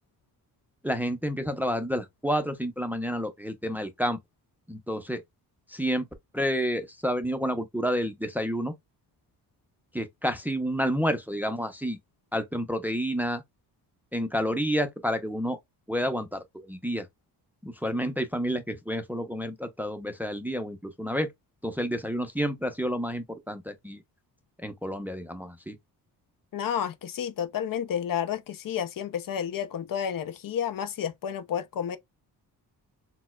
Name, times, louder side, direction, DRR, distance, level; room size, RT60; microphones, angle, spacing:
voice 1, 0.8-4.2 4.7-5.2 5.7-6.1 6.3-8.7 9.9-12.0 12.3-13.4 14.1-15.6 15.9-17.1 17.6-21.3 21.6-24.0 24.6-25.8, equal, 5° right, 0.5 m, -29 dB
voice 2, 26.5-32.0, left 9 dB, 55° left, 0.6 m, -31 dB
4.1 x 2.2 x 2.2 m
cardioid pair, 75°, 40 cm